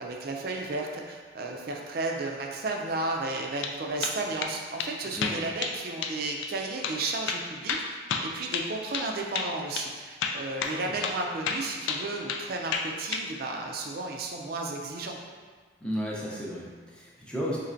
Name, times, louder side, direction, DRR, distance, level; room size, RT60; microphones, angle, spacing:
voice 1, 0.0-15.2, right 2 dB, 50° right, 1 dB, 0.4 m, -33 dB
sound 1, 3.4-3.8 4.0-4.5 4.8-4.9 5.2-5.8 6.0-6.2 6.4-6.5 6.8-7.0 7.3-9.1 9.3-9.5 9.8-9.9 10.2-10.8 11.0-11.2 11.5-12.4 12.7-13.3, left 5 dB, 75° left, 0.3 m, -31 dB
voice 2, 5.1-5.4 10.7-10.9 15.8-17.6, equal, 5° left, -5 dB, 0.5 m, -34 dB
4.3 x 3.1 x 2.5 m, 1.5 s
head